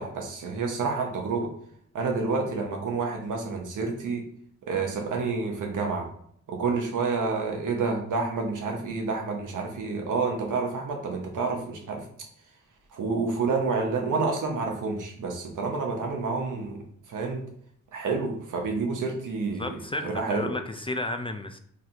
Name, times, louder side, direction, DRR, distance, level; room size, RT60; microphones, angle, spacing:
voice 1, 0.0-1.5 1.9-4.2 4.7-6.1 6.5-12.0 12.9-16.8 17.1-17.4 17.9-19.7 20.0-20.5, right 4 dB, 80° right, 2 dB, 0.9 m, -29 dB
voice 2, 19.6-21.6, left 2 dB, 20° left, 6 dB, 0.3 m, -33 dB
4.0 x 3.1 x 2.8 m, 0.66 s
cardioid pair, 85°, 31 cm